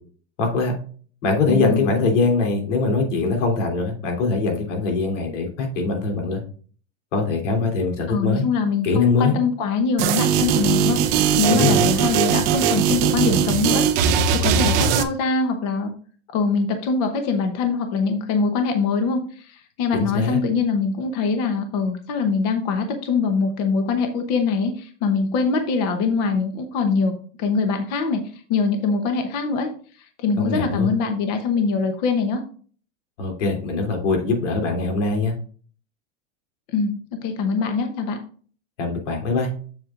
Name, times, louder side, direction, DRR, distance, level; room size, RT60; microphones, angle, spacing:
voice 1, 0.4-0.7 1.2-6.4 7.1-8.5 8.8-9.3 11.5-11.9 19.9-20.4 30.4-30.9 33.2-35.3 38.8-39.5, left 3 dB, 85° left, 3 dB, 3.1 m, -22 dB
voice 2, 1.5-2.0 8.1-15.9 16.3-29.7 30.0-32.4 36.7-38.2, left 4 dB, 35° left, 6 dB, 0.9 m, -23 dB
sound 1, 10.0-15.0, right 8 dB, 25° right, 0.5 m, -19 dB
7.5 x 7.2 x 2.5 m, 0.43 s
supercardioid pair, 175°, 35 cm